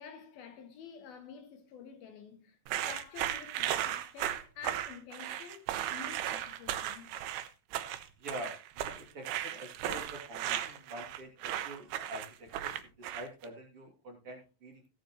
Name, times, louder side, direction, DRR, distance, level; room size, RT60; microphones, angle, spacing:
voice 1, 0.0-7.1, left 6 dB, 75° left, 3.5 m, -49 dB
sound 1, 2.7-13.4, right 12 dB, 90° right, 2.9 m, -36 dB
voice 2, 8.2-14.8, equal, 40° right, 3.1 m, -46 dB
15.5 x 10.0 x 3.0 m
omnidirectional pair, 4.5 m